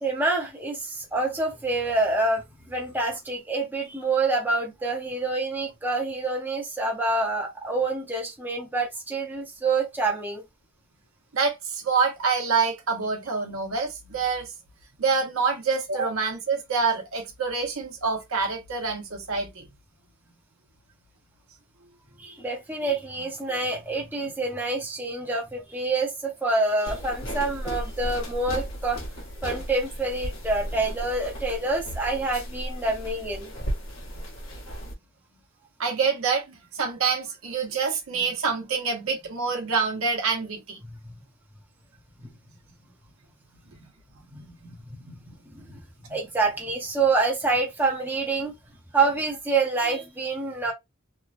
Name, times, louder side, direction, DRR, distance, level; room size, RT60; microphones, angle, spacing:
voice 1, 0.0-10.4 22.2-29.0 29.4-33.5 42.2-42.3 44.3-44.7 45.0-45.8 46.1-48.6 48.9-50.7, right 3 dB, 10° right, 0.8 m, -27 dB
voice 2, 11.3-14.5 15.0-19.7 35.8-40.8, right 5 dB, 70° right, 1.0 m, -26 dB
sound 1, 26.9-34.9, equal, 65° left, 1.2 m, -35 dB
3.1 x 2.2 x 2.5 m
head